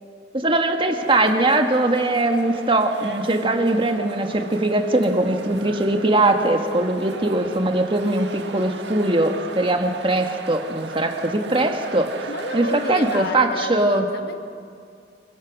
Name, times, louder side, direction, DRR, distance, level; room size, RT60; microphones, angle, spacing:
voice 1, 0.3-12.1 12.5-14.0, right 2 dB, 30° right, 4 dB, 1.7 m, -21 dB
sound 1, 0.9-13.3, right 3 dB, 70° right, 1.6 m, -37 dB
voice 2, 12.3-14.3, left 2 dB, 60° left, 7 dB, 1.4 m, -31 dB
27.0 x 22.0 x 6.1 m, 2.3 s
head